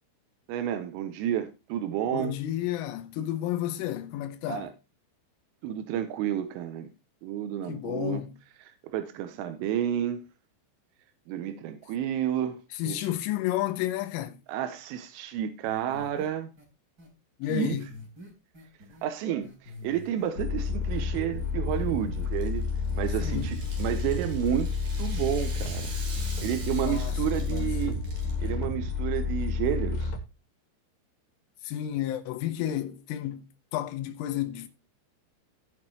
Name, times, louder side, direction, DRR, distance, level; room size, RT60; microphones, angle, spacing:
voice 1, 0.5-2.4 4.5-4.7 5.6-6.9 7.2-8.2 8.7-10.2 11.3-12.6 12.9-13.1 14.5-16.5 17.5-17.8 19.0-22.7 22.9-24.7 25.0-25.9 26.4-28.0 28.4-30.1, right 10 dB, 85° right, 3.4 m, -31 dB
voice 2, 2.1-4.7 7.7-8.4 12.7-14.4 17.4-17.9 23.2-23.6 26.7-27.2 27.5-27.8 31.6-34.7, left 12 dB, 80° left, 3.6 m, -31 dB
sound 1, 15.6-16.3 16.6-16.7 17.0-17.1 17.4-19.1 19.4-20.3 20.6-22.3 22.5-23.0 23.3-23.5, left 2 dB, 20° right, 3.4 m, -46 dB
sound 2, 20.4-30.2, left 4 dB, 60° left, 3.4 m, -30 dB
Rattle (instrument), 22.2-28.5, right 4 dB, 50° right, 4.0 m, -45 dB
16.5 x 6.2 x 3.0 m
omnidirectional pair, 5.9 m